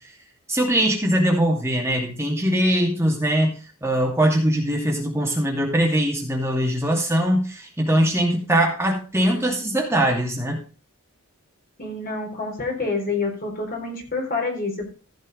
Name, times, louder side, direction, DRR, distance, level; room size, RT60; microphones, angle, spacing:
voice 1, 0.5-3.5 3.8-10.6, right 1 dB, 10° right, -1 dB, 2.5 m, -21 dB
voice 2, 11.8-14.9, left 3 dB, 40° left, 2 dB, 3.9 m, -27 dB
15.5 x 5.5 x 5.1 m, 0.35 s
head